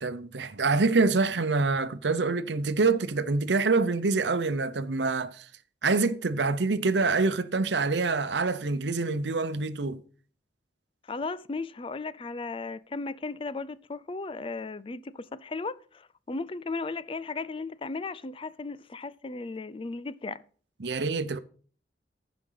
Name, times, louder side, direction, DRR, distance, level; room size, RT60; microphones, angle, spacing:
voice 1, 0.0-5.5 5.8-10.0 20.8-21.4, right 3 dB, 80° right, 0.8 m, -26 dB
voice 2, 11.1-20.4, left 3 dB, 30° left, 0.4 m, -36 dB
15.0 x 5.2 x 5.6 m
head